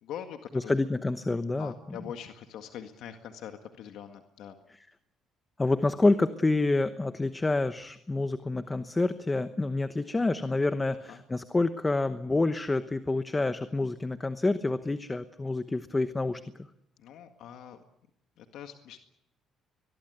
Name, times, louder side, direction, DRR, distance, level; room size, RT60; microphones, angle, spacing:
voice 1, 0.0-0.7 1.6-4.6 11.1-11.2 17.0-17.8 18.4-19.0, left 9 dB, 75° left, 6 dB, 1.8 m, -43 dB
voice 2, 0.5-2.0 5.6-16.4, left 2 dB, 15° left, 10 dB, 1.0 m, -28 dB
22.5 x 22.5 x 8.0 m, 0.80 s
cardioid pair, 125°, 0 cm